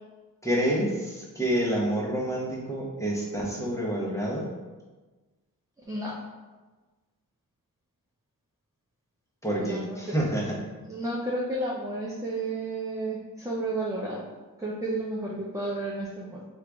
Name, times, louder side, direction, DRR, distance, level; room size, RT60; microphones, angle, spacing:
voice 1, 0.4-4.5 9.4-10.6, right 1 dB, 10° left, -4 dB, 0.9 m, -28 dB
voice 2, 9.6-10.0 10.9-14.2 14.6-16.4, right 2 dB, 10° right, -5 dB, 0.5 m, -32 dB
4.6 x 2.5 x 3.4 m, 1.2 s
wide cardioid pair, 110°, 34 cm